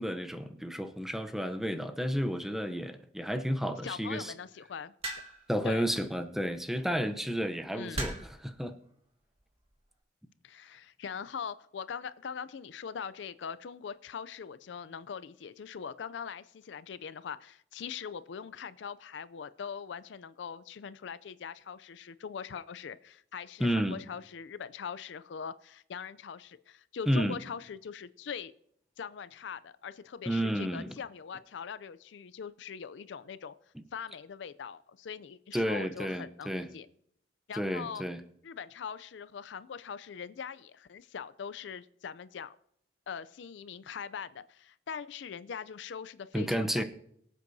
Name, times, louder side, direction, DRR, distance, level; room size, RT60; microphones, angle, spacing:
voice 1, 0.0-4.3 5.5-8.7 23.6-24.0 27.1-27.4 30.3-30.9 35.5-36.7 37.5-38.2 46.3-46.8, equal, ahead, 0.7 m, -31 dB
voice 2, 3.8-4.9 5.6-5.9 7.7-8.2 10.4-28.5 29.0-33.5 33.9-36.9 37.5-38.0 38.4-42.6 43.1-46.8, left 6 dB, 70° left, 0.4 m, -42 dB
sound 1, 5.0-5.5 6.8-7.0 7.9-8.4 9.4-9.7, right 2 dB, 35° right, 2.0 m, -37 dB
23.0 x 8.1 x 2.7 m
head